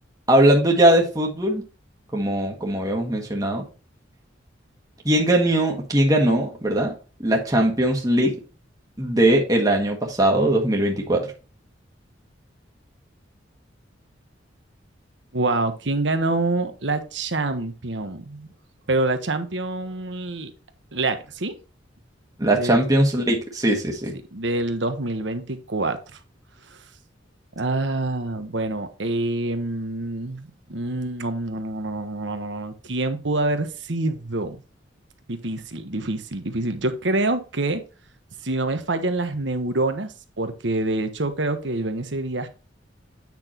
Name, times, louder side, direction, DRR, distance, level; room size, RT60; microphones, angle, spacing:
voice 1, 0.3-1.6 2.1-3.6 5.0-6.9 7.2-8.3 9.0-11.3 22.4-24.1, right 1 dB, 20° right, 0 dB, 1.6 m, -20 dB
voice 2, 15.3-18.5 18.9-20.5 20.9-21.6 22.6-22.8 24.3-26.2 26.7-26.8 27.6-34.6 35.3-37.8 38.4-42.5, right 2 dB, 75° right, 8 dB, 1.3 m, -26 dB
8.9 x 6.1 x 2.9 m, 0.34 s
head